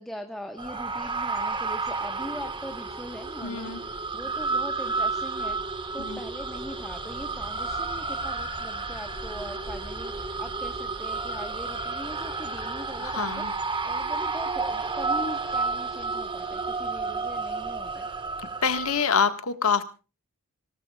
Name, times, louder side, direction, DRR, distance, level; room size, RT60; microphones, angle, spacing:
voice 1, 0.0-5.6 5.9-18.1, equal, ahead, 3 dB, 1.3 m, -41 dB
sound 1, 0.6-19.0, right 3 dB, 25° right, 1.5 m, -31 dB
voice 2, 3.4-3.8 6.0-6.2 13.0-13.5 18.6-19.8, left 5 dB, 75° left, 9 dB, 1.6 m, -26 dB
26.5 x 18.0 x 2.4 m, 0.33 s
head